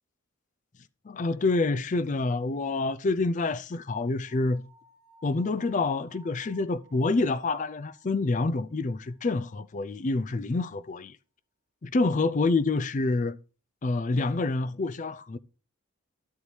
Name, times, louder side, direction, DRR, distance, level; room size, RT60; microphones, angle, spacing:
voice 1, 1.0-4.6 5.2-11.2 11.9-13.4 13.8-15.4, left 3 dB, 35° left, 0.4 m, -27 dB
sound 1, 4.2-9.3, equal, 55° left, 2.8 m, -59 dB
12.5 x 8.1 x 3.2 m
head